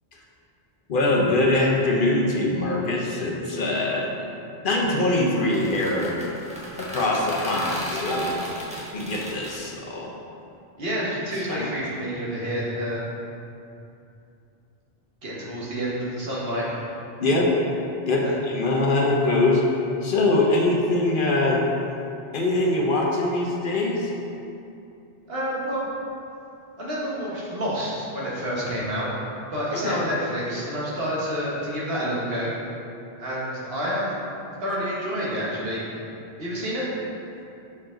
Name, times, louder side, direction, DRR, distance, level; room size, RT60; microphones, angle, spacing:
voice 1, 0.9-4.2 4.6-6.2 6.8-10.1 11.3-11.7 17.2-17.5 18.1-19.6 20.0-21.6 22.3-24.1 29.7-30.0, left 2 dB, 60° left, -2 dB, 0.9 m, -23 dB
sound 1, 5.4-9.5, equal, 5° right, 1.0 m, -35 dB
voice 2, 10.8-13.0 15.2-16.9 18.2-18.3 25.3-25.9 26.8-29.1 29.5-32.5 33.2-34.2 34.6-35.8 36.4-36.9, equal, 70° right, -6 dB, 1.5 m, -28 dB
5.8 x 4.7 x 3.8 m, 2.7 s
omnidirectional pair, 1.1 m